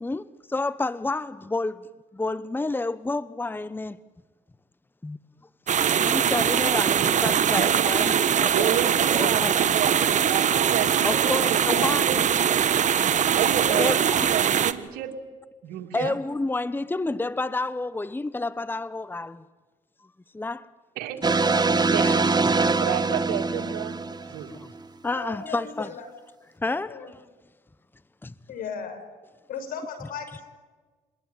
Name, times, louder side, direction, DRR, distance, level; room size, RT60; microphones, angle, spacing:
voice 1, 0.0-4.0 5.0-5.2 6.0-8.8 9.1-9.6 11.0-12.3 13.7-14.0 15.9-19.4 20.3-20.7 22.0-22.2 24.5-24.7 25.0-25.9 26.6-27.2 28.2-28.3, left 2 dB, 15° left, 0.9 m, -30 dB
sound 1, 5.7-14.7, right 8 dB, 55° right, 1.5 m, -22 dB
voice 2, 7.6-7.9 8.5-10.0 10.2-12.2 13.3-15.1 15.6-16.2 21.0-22.3 22.8-24.0 24.3-24.5, right 11 dB, 85° right, 2.8 m, -31 dB
sound 2, 21.2-24.7, right 3 dB, 30° right, 1.5 m, -23 dB
voice 3, 25.1-26.0 26.9-27.1 28.5-29.0 29.5-30.5, left 6 dB, 75° left, 5.8 m, -36 dB
28.0 x 21.0 x 9.5 m
supercardioid pair, 70°, 15 cm